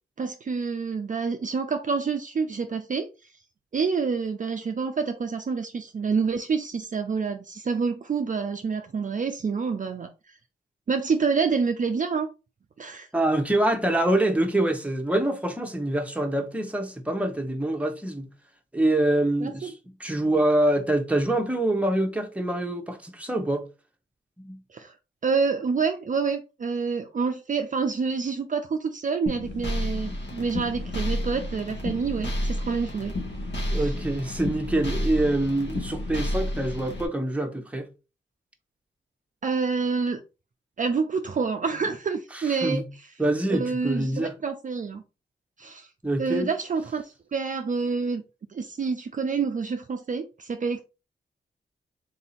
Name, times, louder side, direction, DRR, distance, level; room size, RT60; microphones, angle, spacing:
voice 1, 0.2-3.1 3.7-10.4 10.9-12.3 12.8-13.1 19.4-19.7 24.7-25.0 25.2-33.1 33.7-33.9 39.4-40.2 40.8-43.1 43.5-45.0 45.6-45.9 46.2-48.2 48.5-50.8, right 5 dB, 40° right, 0.5 m, -27 dB
voice 2, 13.1-18.3 18.7-19.7 20.0-23.7 24.4-24.6 33.7-37.9 42.3-42.9 43.2-44.3 46.0-46.5, right 1 dB, 5° right, 1.0 m, -25 dB
sound 1, 29.3-37.1, left 1 dB, 65° left, 1.6 m, -30 dB
3.8 x 2.8 x 4.1 m
cardioid pair, 65°, 20 cm